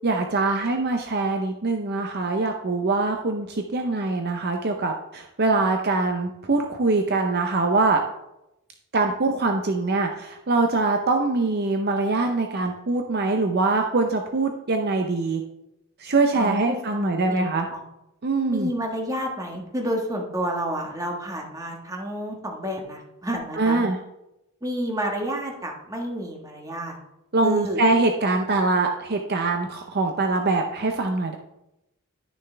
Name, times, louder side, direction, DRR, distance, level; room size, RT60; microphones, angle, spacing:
voice 1, 0.0-8.0 8.9-15.4 16.0-17.7 18.2-18.7 23.6-24.0 27.3-31.4, right 3 dB, 50° right, 4 dB, 0.6 m, -23 dB
voice 2, 16.3-17.8 18.5-23.8 24.6-27.0 27.4-27.8, equal, 15° right, 1 dB, 1.5 m, -30 dB
11.5 x 6.6 x 3.4 m, 0.90 s
head